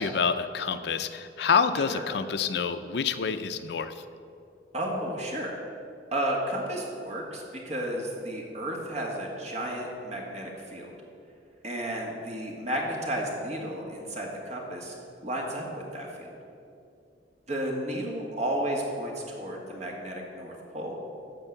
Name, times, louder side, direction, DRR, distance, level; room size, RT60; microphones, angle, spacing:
voice 1, 0.0-4.0, left 6 dB, 70° left, 11 dB, 0.5 m, -27 dB
voice 2, 4.7-5.6 6.1-10.9 11.6-14.9 15.2-15.6 15.9-16.3 17.5-21.0, right 1 dB, 40° right, -1 dB, 1.9 m, -32 dB
13.5 x 4.5 x 8.1 m, 2.5 s
head